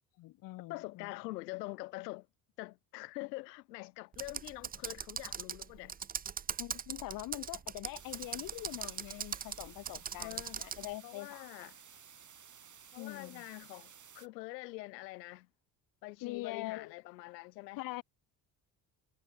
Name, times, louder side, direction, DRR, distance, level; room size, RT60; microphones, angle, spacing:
voice 1, 0.2-1.1 6.6-11.5 13.0-13.4 16.2-16.9 17.8-18.0, left 18 dB, 40° left, 0.6 m, -43 dB
voice 2, 0.7-2.3 2.6-6.0 10.2-10.6 11.0-11.8 12.9-15.5 16.0-17.8, left 20 dB, 75° left, 2.5 m, -45 dB
Computer keyboard, 4.1-10.9, right 7 dB, 20° right, 0.6 m, -40 dB
sound 1, 7.9-14.3, right 7 dB, 35° right, 4.9 m, -56 dB
hypercardioid pair, 55°, 50 cm